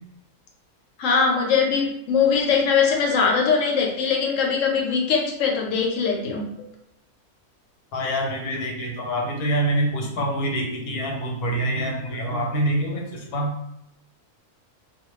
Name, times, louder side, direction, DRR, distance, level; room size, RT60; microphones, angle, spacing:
voice 1, 1.0-6.5, left 5 dB, 65° left, 1 dB, 0.9 m, -21 dB
voice 2, 7.9-13.5, right 1 dB, 90° left, 0 dB, 1.2 m, -26 dB
2.4 x 2.2 x 3.0 m, 0.79 s
omnidirectional pair, 1.5 m